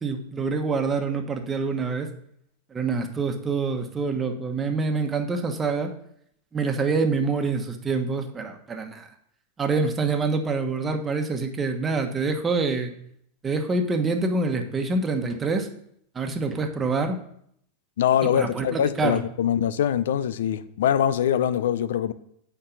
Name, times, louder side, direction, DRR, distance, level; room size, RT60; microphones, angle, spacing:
voice 1, 0.0-2.1 2.7-5.9 6.5-9.1 9.6-12.9 13.4-15.7 16.1-17.2 18.3-19.2, right 4 dB, 20° right, 5 dB, 1.2 m, -26 dB
voice 2, 18.0-22.1, left 9 dB, 80° left, 15 dB, 0.6 m, -23 dB
8.8 x 4.6 x 6.9 m, 0.69 s
hypercardioid pair, 120°, 0 cm